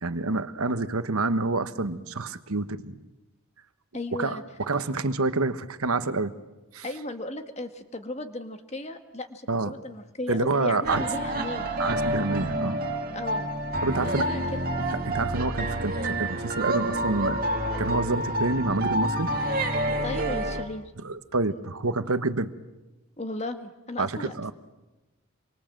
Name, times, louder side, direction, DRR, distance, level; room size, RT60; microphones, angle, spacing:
voice 1, 0.0-3.0 4.2-6.3 6.7-6.8 9.5-9.7 10.3-11.0 11.8-12.8 13.8-14.3 15.0-17.4 17.8-19.3 21.0-22.5 24.0-24.5, right 3 dB, 80° right, 11 dB, 1.2 m, -28 dB
voice 2, 3.9-4.4 6.8-11.7 13.1-13.5 14.0-14.7 19.8-20.9 23.2-24.5, left 2 dB, 30° left, 8 dB, 1.5 m, -36 dB
sound 1, 10.8-20.6, right 1 dB, 40° right, 2.2 m, -28 dB
26.5 x 24.0 x 7.6 m, 1.1 s
head